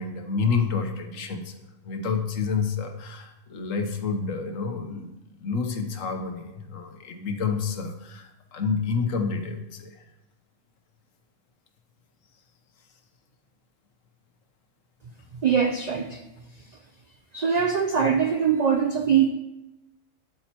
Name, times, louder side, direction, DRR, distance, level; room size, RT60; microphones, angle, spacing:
voice 1, 0.0-1.6 1.8-10.0, left 5 dB, 85° left, 5 dB, 1.3 m, -29 dB
voice 2, 15.4-16.2 17.3-19.3, right 7 dB, 70° right, 6 dB, 0.4 m, -22 dB
9.3 x 8.6 x 2.9 m, 0.95 s
omnidirectional pair, 1.3 m